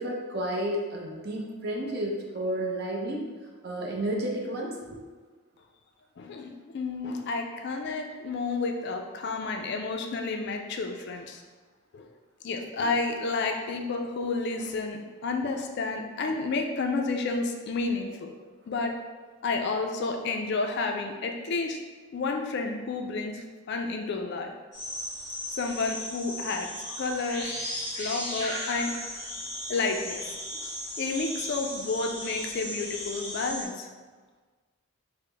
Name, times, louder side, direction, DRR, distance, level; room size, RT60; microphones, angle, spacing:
voice 1, 0.0-3.3 3.6-5.0, right 1 dB, 45° right, -1 dB, 0.6 m, -31 dB
voice 2, 6.2-11.4 11.9-12.1 12.4-18.3 18.7-19.0 19.4-21.8 22.1-24.5 25.5-26.7 27.0-27.6 28.0-28.9 29.7-30.2 31.0-33.9, left 3 dB, 50° left, 3 dB, 0.3 m, -30 dB
sound 1, 24.7-33.6, left 1 dB, 15° left, 1.3 m, -36 dB
4.8 x 2.0 x 3.2 m, 1.4 s
head